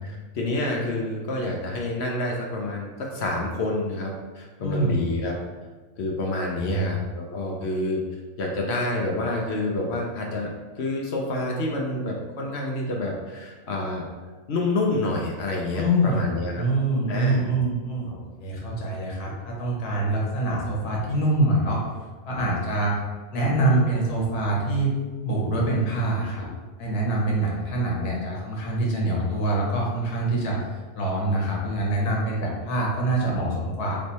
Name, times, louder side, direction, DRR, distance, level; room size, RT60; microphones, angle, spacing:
voice 1, 0.0-5.3 6.0-8.0 8.4-10.5 10.8-14.0 14.5-16.6 17.1-17.5, left 2 dB, 60° left, -1 dB, 0.7 m, -28 dB
voice 2, 4.6-5.0 6.6-6.9 15.7-16.2 16.5-21.8 22.2-23.0 23.3-24.9 25.2-26.5 26.8-30.6 30.9-34.0, right 2 dB, 90° left, -3 dB, 1.5 m, -25 dB
3.3 x 3.1 x 4.0 m, 1.3 s
omnidirectional pair, 1.6 m